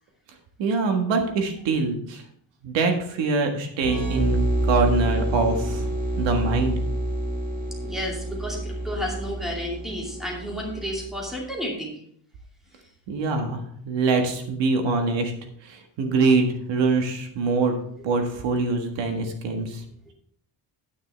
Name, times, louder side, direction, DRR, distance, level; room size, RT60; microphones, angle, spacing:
voice 1, 0.6-2.2 2.6-5.9 6.2-6.8 13.1-15.3 15.6-17.8 18.0-19.8, right 3 dB, 75° right, 4 dB, 1.7 m, -24 dB
sound 1, 3.8-11.3, right 1 dB, 20° right, 2.9 m, -28 dB
voice 2, 7.8-12.0, equal, ahead, -3 dB, 2.5 m, -32 dB
9.8 x 9.3 x 3.4 m, 0.64 s
cardioid pair, 180°, 44 cm